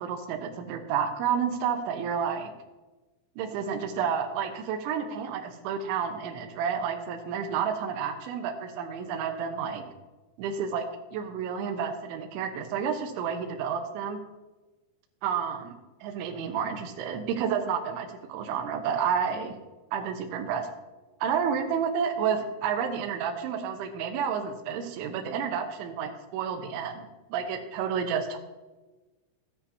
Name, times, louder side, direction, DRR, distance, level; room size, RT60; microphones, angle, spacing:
voice 1, 0.0-2.5 3.4-9.8 10.4-10.9 11.1-14.2 15.2-15.7 16.0-19.6 19.9-20.7 21.2-28.4, right 7 dB, 75° right, 5 dB, 3.0 m, -30 dB
14.0 x 9.7 x 2.8 m, 1.2 s
omnidirectional pair, 6.0 m